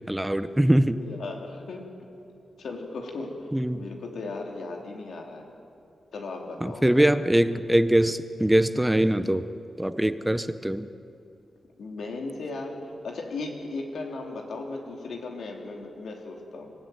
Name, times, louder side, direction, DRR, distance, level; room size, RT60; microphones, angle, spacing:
voice 1, 0.1-1.0 3.5-3.9 6.6-9.5 9.8-10.9, right 1 dB, 5° right, 12 dB, 0.7 m, -22 dB
voice 2, 1.0-1.9 2.6-5.5 6.1-7.0 11.8-16.7, left 3 dB, 70° left, 2 dB, 3.3 m, -36 dB
26.0 x 16.5 x 9.3 m, 2.7 s
wide cardioid pair, 150°, 0 cm